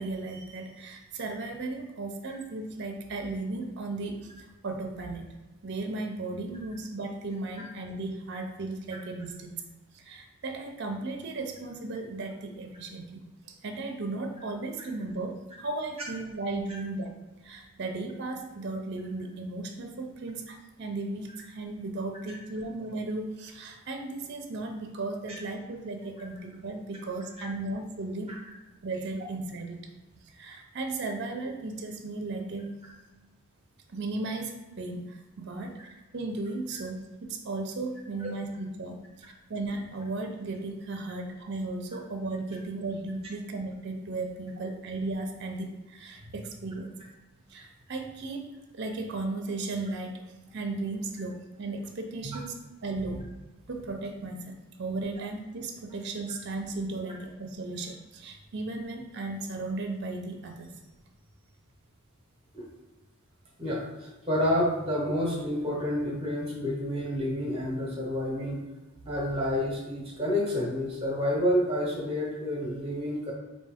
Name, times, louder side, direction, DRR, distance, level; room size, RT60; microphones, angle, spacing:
voice 1, 0.0-5.3 5.6-9.6 9.9-13.2 13.5-17.1 17.4-28.3 28.8-29.9 30.2-32.7 33.9-35.8 36.1-46.9 47.5-48.5 48.7-52.5 52.8-53.2 53.7-60.8, right 2 dB, 55° right, 4 dB, 0.5 m, -35 dB
voice 2, 63.6-68.6 69.1-73.3, left 1 dB, 30° right, -3 dB, 0.9 m, -29 dB
4.4 x 2.7 x 3.5 m, 1.2 s
head